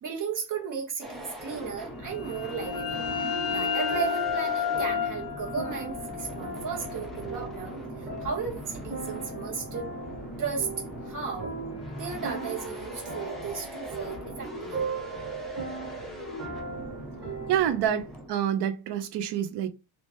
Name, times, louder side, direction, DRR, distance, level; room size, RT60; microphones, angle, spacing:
voice 1, 0.0-3.0 3.5-9.9 10.4-10.7 11.0-11.5 11.9-14.8, right 6 dB, 40° right, 1.3 m, -35 dB
sound 1, 1.0-18.3, equal, ahead, 0.7 m, -40 dB
sound 2, 2.1-7.6, left 7 dB, 40° left, 0.6 m, -32 dB
sound 3, 2.6-17.9, right 4 dB, 25° right, 1.2 m, -39 dB
voice 2, 17.5-19.7, right 10 dB, 55° right, 0.6 m, -27 dB
3.2 x 2.8 x 3.0 m
cardioid pair, 165°, 48 cm